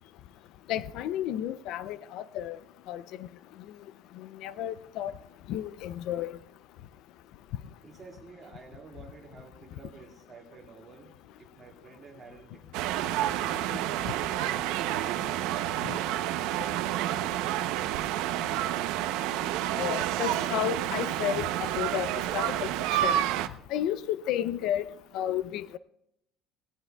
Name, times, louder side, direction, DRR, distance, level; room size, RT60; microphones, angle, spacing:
voice 1, 0.7-2.6 2.9-3.0 4.4-5.1 5.5-6.4 19.8-23.2 23.7-24.9 25.1-25.8, left 11 dB, 55° left, 0.4 m, -32 dB
voice 2, 7.8-11.1 11.4-13.1, right 4 dB, 20° right, 1.9 m, -51 dB
sound 1, 12.7-23.5, right 12 dB, 70° right, 0.6 m, -29 dB
19.0 x 18.0 x 2.3 m
cardioid pair, 175°, 0 cm